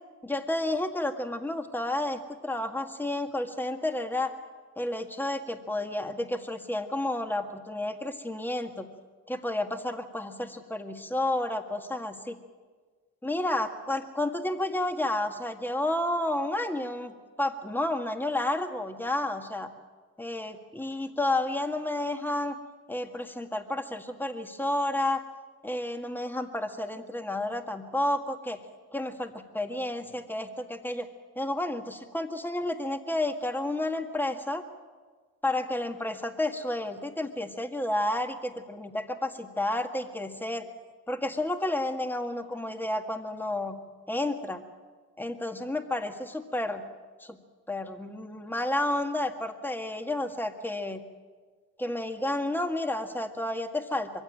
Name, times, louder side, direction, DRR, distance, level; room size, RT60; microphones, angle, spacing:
voice 1, 0.2-4.3 4.8-8.9 9.3-12.4 13.2-19.7 20.2-22.5 22.9-25.2 25.6-28.6 28.9-31.1 31.4-34.6 35.4-40.7 41.1-43.8 44.1-44.6 45.2-46.8 47.2-47.4 47.7-51.0 51.8-54.1, left 1 dB, 5° left, 5 dB, 1.9 m, -31 dB
23.0 x 16.0 x 9.1 m, 1.4 s
cardioid pair, 90°, 30 cm